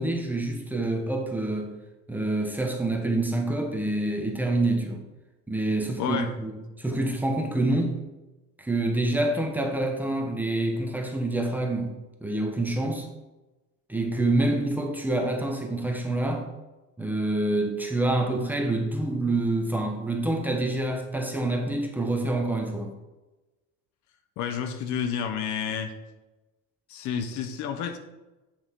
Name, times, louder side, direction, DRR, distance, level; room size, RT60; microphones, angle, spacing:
voice 1, 0.0-1.7 2.1-5.0 5.5-8.0 8.6-11.9 12.2-13.1 13.9-16.4 17.0-22.9, right 2 dB, 5° right, 2 dB, 1.1 m, -27 dB
voice 2, 6.0-6.3 24.4-25.9 26.9-28.0, left 7 dB, 60° left, 8 dB, 0.9 m, -30 dB
7.9 x 7.0 x 3.7 m, 1.1 s
cardioid pair, 135°, 33 cm